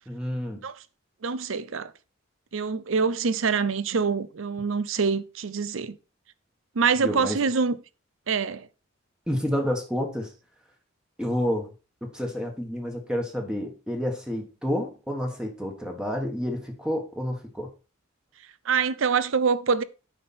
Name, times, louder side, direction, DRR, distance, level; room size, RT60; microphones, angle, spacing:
voice 1, 0.1-0.6 7.0-7.4 9.3-10.3 11.2-11.7 12.0-17.7, equal, 5° right, 1.3 m, -29 dB
voice 2, 1.2-1.9 2.5-6.0 6.7-7.8 8.3-8.7 18.6-19.8, right 5 dB, 70° right, 0.6 m, -25 dB
9.1 x 5.6 x 4.3 m
head